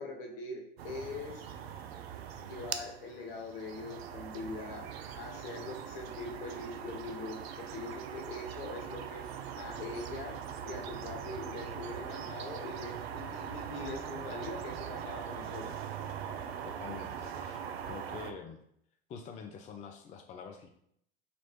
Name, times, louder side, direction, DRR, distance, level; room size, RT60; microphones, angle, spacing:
voice 1, 0.0-1.4 2.4-4.9 5.2-9.2 9.5-10.4 10.6-15.8, left 2 dB, 60° left, 1 dB, 1.1 m, -42 dB
sound 1, 0.8-18.3, right 8 dB, 75° right, 0.5 m, -41 dB
voice 2, 16.6-18.6 19.1-20.7, left 6 dB, 25° left, 4 dB, 0.4 m, -46 dB
4.0 x 2.9 x 2.9 m, 0.70 s
hypercardioid pair, 80°, 32 cm